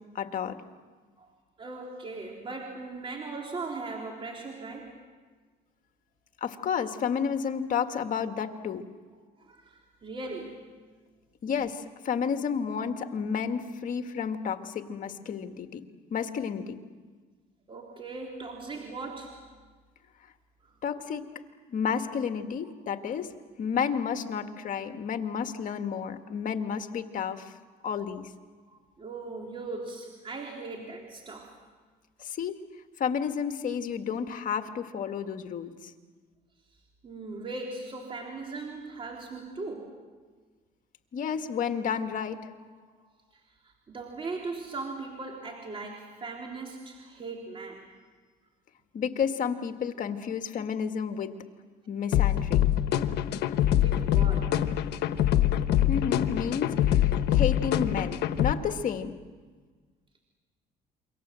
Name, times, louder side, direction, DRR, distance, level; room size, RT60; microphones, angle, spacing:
voice 1, 0.2-0.6 6.4-8.8 11.4-15.8 16.1-16.8 20.8-21.3 21.7-23.3 23.6-27.5 27.8-28.3 32.2-32.6 33.0-35.9 41.1-42.4 48.9-51.3 51.9-52.6 55.9-59.1, left 7 dB, 50° left, 7 dB, 1.9 m, -31 dB
voice 2, 1.6-4.9 9.1-10.6 17.7-19.4 20.6-20.7 22.6-22.7 28.6-31.5 37.0-40.0 42.9-47.9 53.4-53.5 53.7-54.6 57.3-57.4, right 3 dB, 30° right, 0 dB, 3.8 m, -39 dB
sound 1, 52.1-58.5, left 12 dB, 80° left, 1.1 m, -24 dB
28.5 x 24.0 x 7.7 m, 1.4 s
cardioid pair, 110°, 17 cm